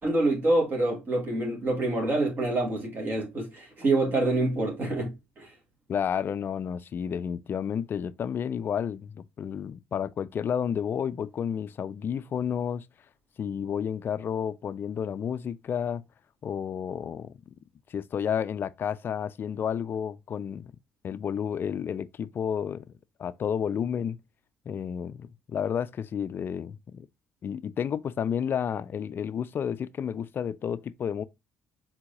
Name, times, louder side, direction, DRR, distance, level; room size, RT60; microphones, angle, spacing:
voice 1, 0.0-5.5, right 2 dB, 40° right, 2.0 m, -26 dB
voice 2, 5.9-12.9 13.4-16.0 16.4-17.5 17.9-20.7 21.0-22.8 23.2-24.2 24.7-27.1 27.4-31.2, left 8 dB, 45° left, 0.3 m, -31 dB
4.5 x 3.7 x 2.6 m
supercardioid pair, 65°, 5 cm